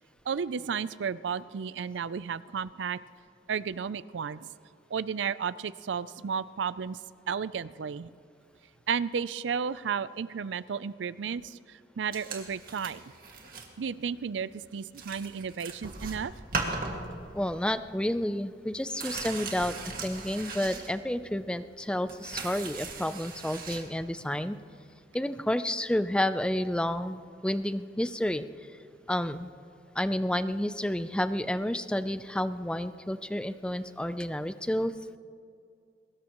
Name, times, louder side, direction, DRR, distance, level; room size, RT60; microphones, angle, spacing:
voice 1, 0.3-3.0 3.5-4.5 4.9-7.0 7.3-8.1 8.9-13.0 13.8-16.3, right 6 dB, 90° right, 17 dB, 0.4 m, -33 dB
sound 1, 12.1-13.7 14.1-14.3 14.6-14.7 14.9-17.6 17.9-18.0 18.2-21.4 21.7-23.9 24.9-25.0, right 3 dB, 50° right, 2.0 m, -38 dB
voice 2, 17.3-24.6 25.1-28.5 29.1-29.5 30.0-34.9, left 1 dB, 5° left, 12 dB, 0.4 m, -30 dB
22.5 x 20.0 x 3.0 m, 2.4 s
head